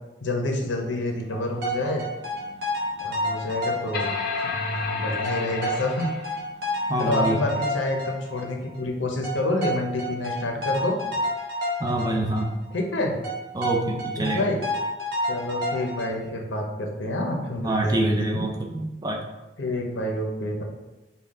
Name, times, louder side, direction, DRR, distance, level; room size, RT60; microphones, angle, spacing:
voice 1, 0.2-2.0 3.0-4.1 4.4-6.1 7.0-11.0 12.7-13.2 14.2-14.6 15.3-18.4 19.6-20.6, left 1 dB, 85° left, 1 dB, 0.8 m, -28 dB
sound 1, 1.2-7.7, left 4 dB, 55° left, 0.4 m, -34 dB
sound 2, 1.3-4.5 4.7-4.8 5.2-8.8 9.2-12.5 12.7-12.8 13.2-16.1, left 1 dB, 60° right, 1.5 m, -30 dB
voice 2, 6.9-7.4 11.8-12.5 13.5-14.5 17.6-19.2, right 1 dB, 20° right, 1 dB, 0.4 m, -26 dB
5.5 x 2.3 x 3.6 m, 1.0 s
head